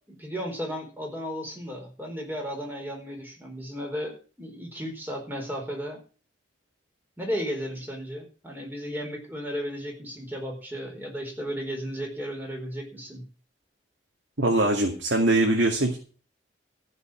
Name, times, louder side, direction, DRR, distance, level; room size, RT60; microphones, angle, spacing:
voice 1, 0.1-6.0 7.2-13.2, equal, 10° right, 1 dB, 4.3 m, -34 dB
voice 2, 14.4-16.0, right 2 dB, 70° right, 1 dB, 2.2 m, -22 dB
14.5 x 5.6 x 7.8 m, 0.38 s
head